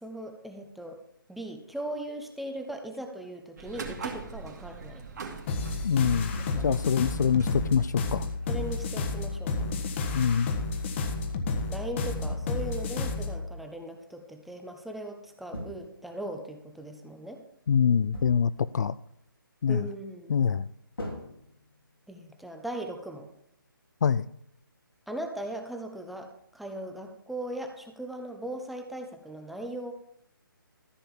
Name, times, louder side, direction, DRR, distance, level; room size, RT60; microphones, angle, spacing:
voice 1, 0.0-1.0 1.3-5.0 6.4-6.8 8.5-9.7 11.7-17.4 19.7-20.3 22.1-23.3 25.1-26.3 26.5-29.9, right 1 dB, ahead, 3 dB, 0.9 m, -39 dB
sound 1, 3.6-9.4, right 5 dB, 50° right, 2.4 m, -43 dB
sound 2, 5.5-13.4, left 3 dB, 30° left, 1.5 m, -31 dB
voice 2, 5.8-6.3 6.6-8.3 10.1-10.5 17.7-18.9 19.6-19.9 20.3-20.7 24.0-24.2, left 7 dB, 50° left, 16 dB, 0.4 m, -24 dB
sound 3, 6.3-7.0 9.6-10.2 12.2-12.9 15.5-16.4 18.1-18.7 21.0-22.0, equal, 80° left, 3.5 m, -41 dB
14.0 x 5.5 x 7.3 m, 0.72 s
figure-of-eight pair, 145°, 12 cm